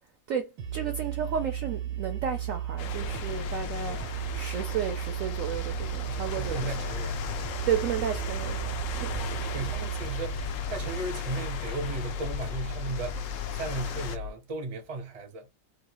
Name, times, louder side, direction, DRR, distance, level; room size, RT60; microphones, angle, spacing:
voice 1, 0.3-6.5 7.6-8.7 9.0-9.1, right 8 dB, 70° right, 0.7 m, -32 dB
sound 1, 0.6-14.3, right 4 dB, 85° right, 1.4 m, -35 dB
sound 2, 2.8-14.2, left 5 dB, 80° left, 0.7 m, -37 dB
voice 2, 3.9-4.2 6.1-7.3 9.0-13.3 13.6-15.5, right 3 dB, 35° right, 0.5 m, -36 dB
3.1 x 2.5 x 2.9 m
omnidirectional pair, 1.9 m